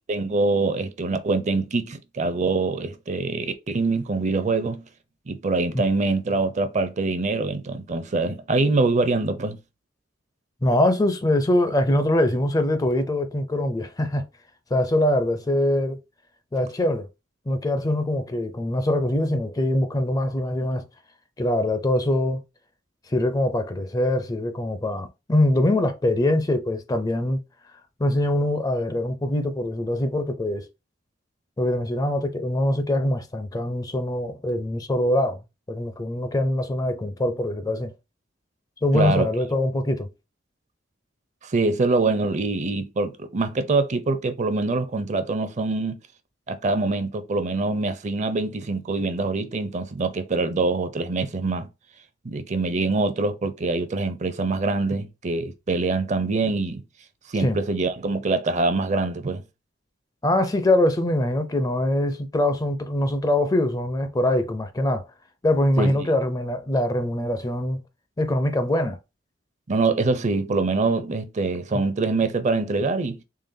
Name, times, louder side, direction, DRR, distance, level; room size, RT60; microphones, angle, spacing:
voice 1, 0.1-4.8 5.3-9.6 38.9-39.3 41.4-46.0 46.5-51.7 52.2-56.8 57.3-59.4 65.8-66.1 69.7-73.2, right 3 dB, 40° right, 0.5 m, -24 dB
voice 2, 10.6-14.2 14.7-16.0 16.5-17.1 17.5-20.8 21.4-22.4 23.1-27.4 28.0-30.7 31.6-35.4 35.7-37.9 38.8-40.1 57.4-57.6 60.2-65.1 65.4-67.8 68.2-69.0, left 1 dB, 20° left, 0.4 m, -23 dB
3.8 x 3.4 x 2.6 m
head